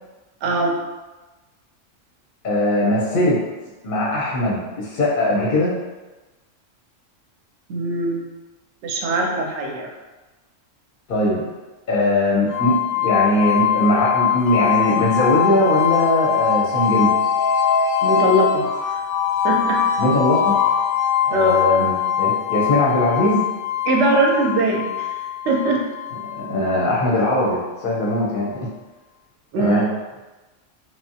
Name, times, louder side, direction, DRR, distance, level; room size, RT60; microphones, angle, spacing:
voice 1, 0.4-0.8 7.7-8.2 8.8-9.9 18.0-19.0 19.4-19.8 21.3-21.6 23.9-25.2 25.4-25.8 29.5-29.9, right 2 dB, 70° right, 1 dB, 0.8 m, -21 dB
voice 2, 2.4-3.4 3.8-5.7 11.1-11.4 11.9-12.7 13.0-17.1 20.0-20.6 21.2-23.4 26.4-28.5 29.6-29.9, left 1 dB, 55° left, -5 dB, 0.6 m, -20 dB
sound 1, 12.5-27.4, left 9 dB, 90° left, 1.0 m, -22 dB
3.0 x 2.0 x 2.7 m, 1.1 s
omnidirectional pair, 1.3 m